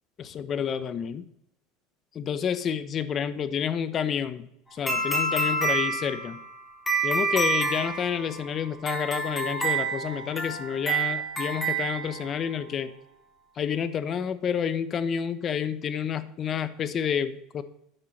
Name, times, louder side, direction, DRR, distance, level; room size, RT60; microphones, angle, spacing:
voice 1, 0.2-1.3 2.1-6.4 7.0-12.9 13.6-17.6, left 8 dB, 35° left, 14 dB, 1.0 m, -29 dB
sound 1, 4.9-12.6, right 3 dB, 10° left, 3.5 m, -28 dB
11.0 x 7.3 x 6.5 m, 0.80 s
supercardioid pair, 125°, 0 cm